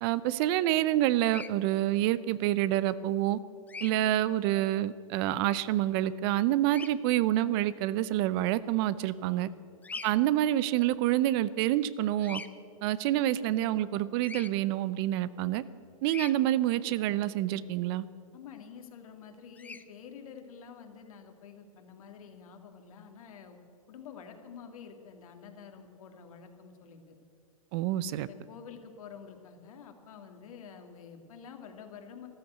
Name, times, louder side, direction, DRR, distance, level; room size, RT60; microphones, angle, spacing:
voice 1, 0.0-3.4 3.8-9.5 10.0-12.4 12.8-15.6 16.0-18.0 27.7-28.3, right 13 dB, 40° right, 17 dB, 0.6 m, -27 dB
Bird vocalization bird call bird song, 1.3-1.5 3.7-3.9 6.7-6.9 9.8-10.1 12.2-12.5 14.2-14.5 16.1-16.3 19.6-19.8, left 4 dB, 10° left, 0.5 m, -41 dB
voice 2, 9.2-9.6 18.3-23.6 23.9-27.2 28.3-32.3, left 7 dB, 70° left, 5 dB, 2.2 m, -49 dB
14.0 x 12.5 x 8.0 m, 2.4 s
hypercardioid pair, 130°, 18 cm